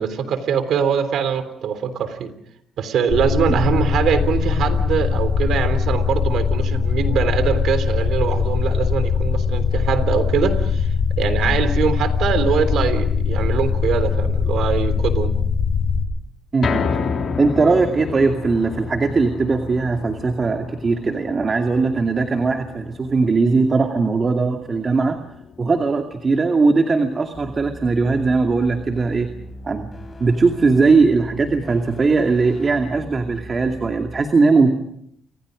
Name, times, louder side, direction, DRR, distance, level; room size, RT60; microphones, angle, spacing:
voice 1, 0.0-2.3 2.8-15.3, right 7 dB, 75° right, 11 dB, 3.4 m, -22 dB
sound 1, 3.1-16.1, left 6 dB, 70° left, 4.3 m, -21 dB
voice 2, 16.5-16.8 17.4-25.2 25.6-29.3 29.6-29.9 30.2-34.7, right 4 dB, 35° right, 5 dB, 2.4 m, -19 dB
sound 2, 16.6-28.9 29.3-29.4 29.8-29.9, left 5 dB, 55° left, 3.1 m, -31 dB
sound 3, 27.3-34.2, left 1 dB, 25° left, 7.3 m, -39 dB
29.5 x 25.5 x 5.2 m, 0.71 s
cardioid pair, 90°, 0 cm